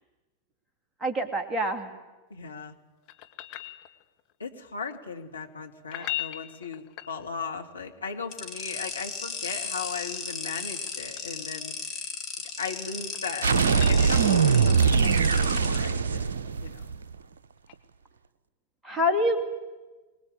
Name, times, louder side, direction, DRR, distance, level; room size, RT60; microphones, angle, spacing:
voice 1, 1.0-2.0 6.0-6.1 18.8-19.4, left 1 dB, 10° right, 4 dB, 2.9 m, -26 dB
voice 2, 2.3-2.8 4.4-11.7 12.6-16.3 16.6-17.0, left 5 dB, 75° left, 2 dB, 2.4 m, -37 dB
sound 1, 3.1-4.3 5.8-7.6 9.8-11.4 12.8-14.9 17.7-17.8, left 14 dB, 40° left, 2.0 m, -40 dB
sound 2, 8.3-15.8, left 5 dB, 20° left, 4.4 m, -36 dB
sound 3, 13.4-17.1, right 5 dB, 65° right, 0.8 m, -22 dB
24.5 x 20.0 x 9.2 m, 1.2 s
figure-of-eight pair, 90°, 0 cm